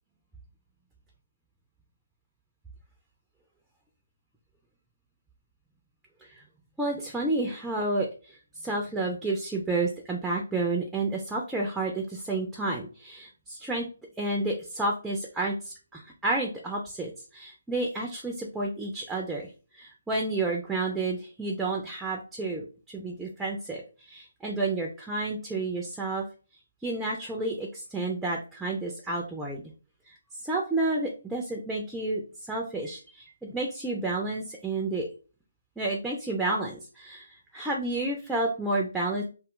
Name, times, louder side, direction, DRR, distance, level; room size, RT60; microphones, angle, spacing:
voice 1, 6.8-13.9 14.2-26.2 26.8-29.6 30.1-30.2 30.4-35.1 35.8-39.2, right 2 dB, 5° right, -1 dB, 0.4 m, -30 dB
2.3 x 2.0 x 3.6 m, 0.36 s
figure-of-eight pair, 150°, 0 cm